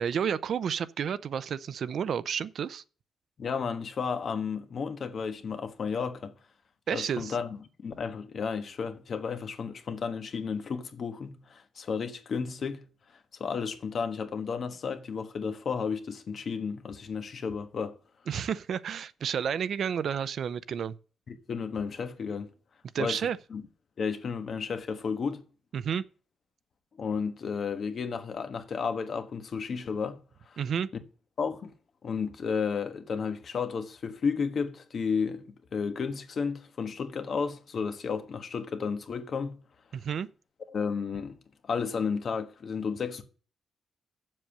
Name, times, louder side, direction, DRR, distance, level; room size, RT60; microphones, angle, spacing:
voice 1, 0.0-2.8 6.9-7.3 18.3-21.0 22.9-23.4 25.7-26.0 30.6-30.9 39.9-40.3, right 8 dB, 60° right, 0.5 m, -31 dB
voice 2, 3.4-6.3 6.9-7.6 7.8-12.8 13.4-18.0 21.3-22.5 23.0-23.2 23.5-23.6 24.0-25.4 27.0-30.2 30.5-30.6 31.4-31.7 32.0-39.6 40.7-41.4 41.7-43.2, left 5 dB, 50° left, 1.3 m, -32 dB
7.6 x 6.7 x 7.5 m
wide cardioid pair, 150°, 0 cm